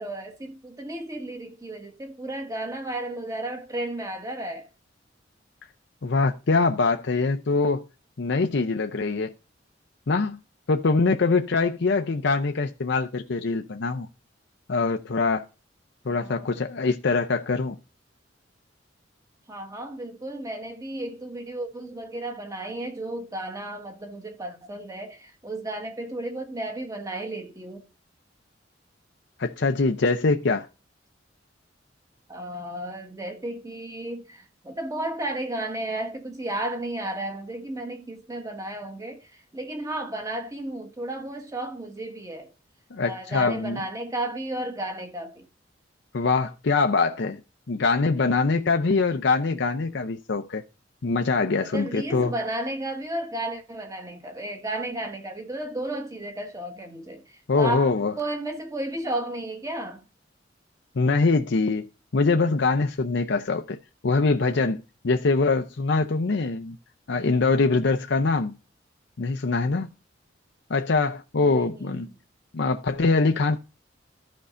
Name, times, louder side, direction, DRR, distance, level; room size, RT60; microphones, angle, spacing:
voice 1, 0.0-4.7 16.1-16.6 19.5-27.9 32.3-42.5 43.0-45.5 51.6-60.0 71.4-72.1, right 1 dB, 20° right, 1.5 m, -33 dB
voice 2, 6.0-7.8 8.2-9.3 10.1-10.4 10.7-14.1 14.7-15.5 16.1-17.8 29.4-30.7 42.9-43.8 46.1-47.4 47.7-50.6 51.0-52.3 57.5-58.1 61.0-63.8 64.0-66.8 67.1-68.5 69.2-69.9 70.7-72.1 72.5-73.6, left 3 dB, 65° left, 0.6 m, -23 dB
14.0 x 5.4 x 2.5 m
head